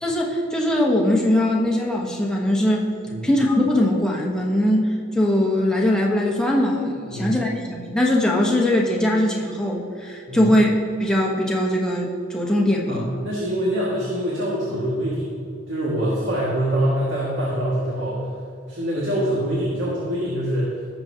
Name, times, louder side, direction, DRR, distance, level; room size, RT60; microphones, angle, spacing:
voice 1, 0.0-2.9 3.2-10.7 11.0-13.1, left 1 dB, 5° left, -2 dB, 1.1 m, -21 dB
voice 2, 12.9-15.3 15.7-18.2 18.7-20.7, right 1 dB, 60° right, -6 dB, 1.9 m, -24 dB
17.5 x 6.9 x 2.8 m, 2.5 s
head